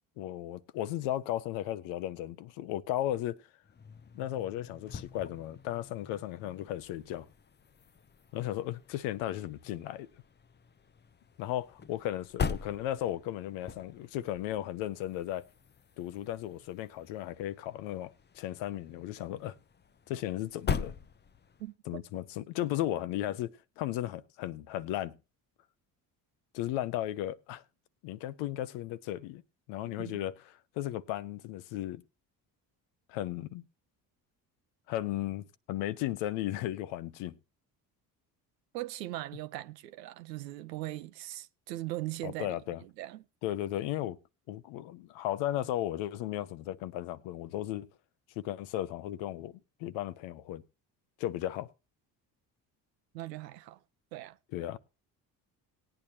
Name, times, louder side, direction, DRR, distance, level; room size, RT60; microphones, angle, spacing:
voice 1, 0.2-3.4 4.1-7.3 8.3-10.1 11.4-15.5 16.0-19.6 20.1-20.9 21.9-25.1 26.5-27.6 28.0-29.4 29.7-30.3 30.8-32.0 33.1-33.6 34.9-37.4 42.2-42.8 43.4-44.2 44.5-47.9 48.4-50.6 51.2-51.7 54.5-54.8, left 13 dB, 70° left, 0.8 m, -35 dB
sound 1, 3.6-21.7, left 6 dB, 20° left, 0.6 m, -42 dB
voice 2, 21.6-22.0 30.0-30.2 38.7-43.2 53.1-53.8 54.1-54.4, right 16 dB, 90° right, 0.7 m, -40 dB
18.0 x 9.0 x 2.8 m
hypercardioid pair, 55°, 48 cm